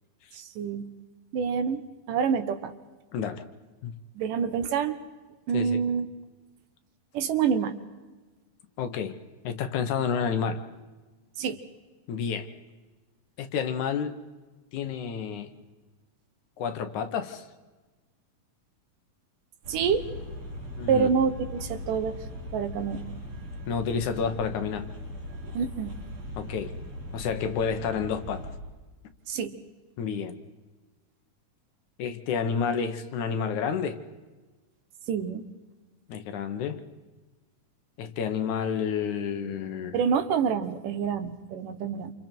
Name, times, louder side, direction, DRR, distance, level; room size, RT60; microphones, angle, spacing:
voice 1, 0.6-0.9 1.3-1.8 2.1-2.7 4.2-5.0 5.5-6.1 7.1-7.7 11.4-11.6 19.7-20.0 20.9-22.2 22.5-23.0 25.5-25.9 29.3-29.5 35.1-35.4 39.9-42.1, right 6 dB, 75° right, 9 dB, 2.8 m, -27 dB
voice 2, 3.1-3.4 3.8-3.9 5.5-5.8 8.8-9.1 9.4-10.6 12.1-12.5 13.4-14.1 14.7-15.5 16.6-17.4 20.8-21.1 23.7-24.9 26.4-26.7 27.1-28.5 30.0-30.4 32.0-34.0 36.1-36.8 38.0-40.0, left 6 dB, 65° left, 8 dB, 2.5 m, -30 dB
sound 1, 19.6-28.6, left 1 dB, 55° right, 5.9 m, -39 dB
28.5 x 28.0 x 4.6 m, 1.3 s
omnidirectional pair, 3.9 m